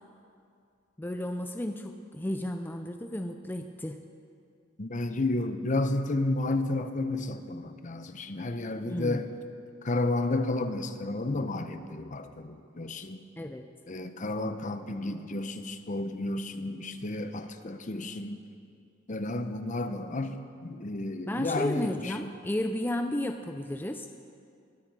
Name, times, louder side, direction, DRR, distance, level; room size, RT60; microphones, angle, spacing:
voice 1, 1.0-4.0 8.9-9.2 13.4-13.7 21.3-24.1, left 1 dB, 10° left, 6 dB, 0.5 m, -33 dB
voice 2, 4.8-9.3 9.8-13.2 13.9-18.4 19.1-20.4 20.6-22.3, left 2 dB, 40° left, 9 dB, 0.8 m, -32 dB
21.5 x 13.0 x 4.8 m, 2.4 s
head